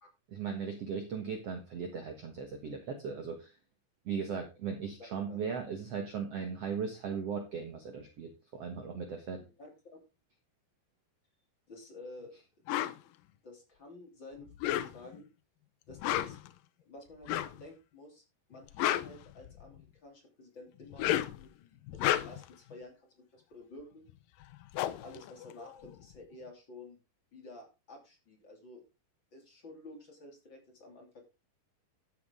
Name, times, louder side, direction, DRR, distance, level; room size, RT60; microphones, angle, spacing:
voice 1, 0.3-3.5 4.1-9.4, right 6 dB, 60° right, 5 dB, 1.8 m, -38 dB
voice 2, 9.4-10.0 11.7-12.3 12.7-13.1 13.4-15.3 15.9-16.4 16.9-18.2 18.5-24.1 24.8-27.0 27.3-28.8 29.3-31.2, left 2 dB, 30° left, 1 dB, 3.2 m, -51 dB
sound 1, 12.7-13.0 14.5-15.2 15.9-16.5 17.2-17.6 18.5-19.8 20.8-21.4 21.9-22.5 24.1-24.2 24.4-26.1, left 13 dB, 75° left, 2.2 m, -32 dB
12.5 x 8.5 x 3.7 m, 0.28 s
omnidirectional pair, 4.5 m